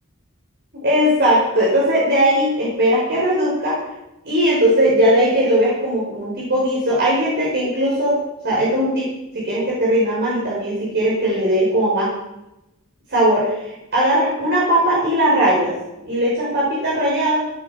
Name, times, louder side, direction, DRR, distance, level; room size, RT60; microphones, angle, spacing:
voice 1, 0.7-3.8 4.2-8.2 8.4-9.1 9.3-12.1 13.1-15.7 16.0-17.4, equal, 50° right, -6 dB, 5.0 m, -18 dB
16.5 x 12.0 x 4.9 m, 0.94 s
head